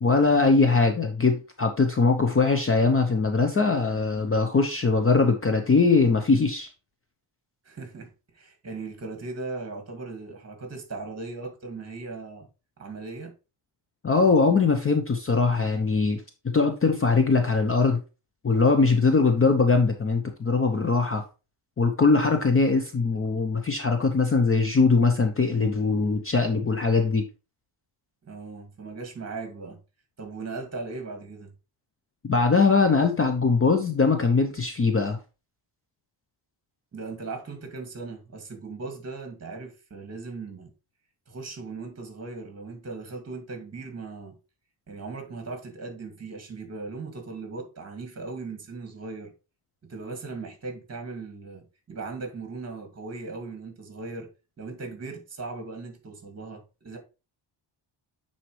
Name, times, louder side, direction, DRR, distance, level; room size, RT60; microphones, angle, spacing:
voice 1, 0.0-6.7 14.0-18.0 18.4-21.2 21.8-27.2 32.3-35.2, left 4 dB, 25° left, 0.7 m, -21 dB
voice 2, 7.6-12.5 12.8-13.3 28.2-29.8 30.2-31.5 36.9-40.7 41.3-44.4 44.9-49.3 49.8-54.3 54.6-57.0, right 3 dB, 30° right, 2.2 m, -38 dB
9.1 x 4.3 x 3.2 m
cardioid pair, 135°, 50 cm